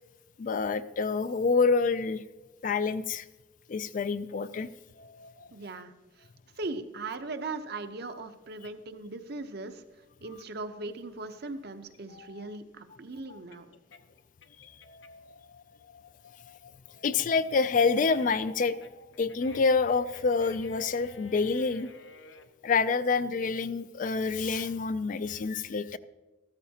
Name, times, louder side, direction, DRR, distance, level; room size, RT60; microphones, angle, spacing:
voice 1, 0.4-2.2 2.6-3.2 3.7-4.7 5.0-5.3 12.2-12.3 14.9-15.6 17.0-18.8 19.2-21.9 22.6-26.0, left 4 dB, 40° left, 14 dB, 0.3 m, -27 dB
voice 2, 5.5-6.3 6.6-13.7, right 3 dB, 55° right, 8 dB, 0.7 m, -39 dB
sound 1, 11.9-15.3 15.7-22.5, left 5 dB, 65° left, 0.7 m, -52 dB
14.0 x 13.0 x 2.8 m, 1.2 s
head